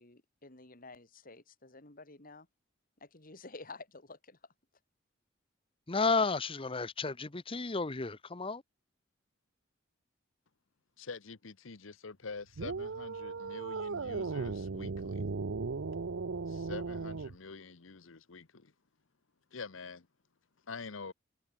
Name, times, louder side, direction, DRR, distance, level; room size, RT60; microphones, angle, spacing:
voice 1, 0.0-2.5 3.0-4.4, left 3 dB, 45° left, 2.8 m, -51 dB
voice 2, 5.9-8.6, left 4 dB, 30° left, 0.9 m, -32 dB
voice 3, 11.0-15.3 16.5-18.7 19.5-20.1 20.7-21.1, left 4 dB, 85° left, 1.0 m, -46 dB
sound 1, 12.6-17.4, right 4 dB, 75° right, 0.7 m, -37 dB
head